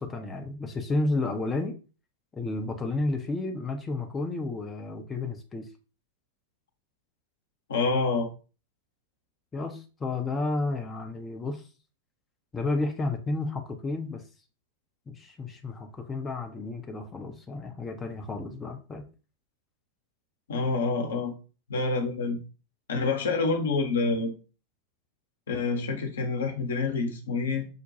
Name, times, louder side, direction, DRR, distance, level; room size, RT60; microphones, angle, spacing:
voice 1, 0.0-1.7 2.3-5.7 9.5-11.6 12.5-14.2 15.1-19.0, left 2 dB, 15° left, 3 dB, 0.5 m, -31 dB
voice 2, 7.7-8.3 20.5-21.4 21.7-22.4 22.9-24.3 25.5-27.7, left 3 dB, 65° left, 4 dB, 0.8 m, -27 dB
5.7 x 2.2 x 2.7 m, 0.34 s
figure-of-eight pair, 90°, 0 cm